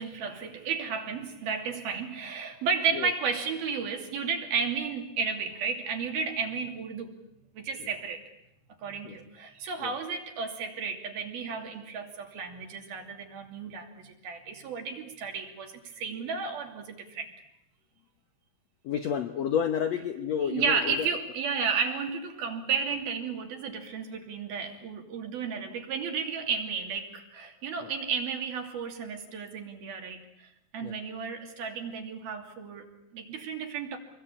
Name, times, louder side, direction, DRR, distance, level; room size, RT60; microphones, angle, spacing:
voice 1, 0.0-7.1 7.5-8.2 8.8-17.3 20.5-34.0, right 5 dB, 70° right, 4.7 m, -33 dB
voice 2, 18.8-21.1 27.8-27.9 30.8-30.9, left 8 dB, 70° left, 1.6 m, -30 dB
27.0 x 21.5 x 8.8 m
omnidirectional pair, 4.5 m